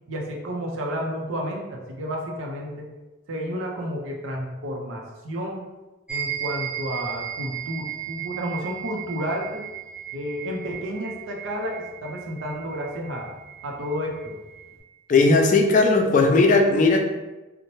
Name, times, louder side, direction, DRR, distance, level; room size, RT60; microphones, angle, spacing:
voice 1, 0.1-2.9 3.3-5.7 6.1-9.6 10.1-11.7 12.0-13.3 13.6-14.4, equal, 85° right, 0 dB, 0.6 m, -31 dB
sound 1, 6.1-14.8, right 10 dB, 5° right, 0.5 m, -36 dB
voice 2, 15.1-17.0, left 3 dB, 40° left, 3 dB, 0.3 m, -17 dB
2.7 x 2.1 x 3.0 m, 1.1 s
head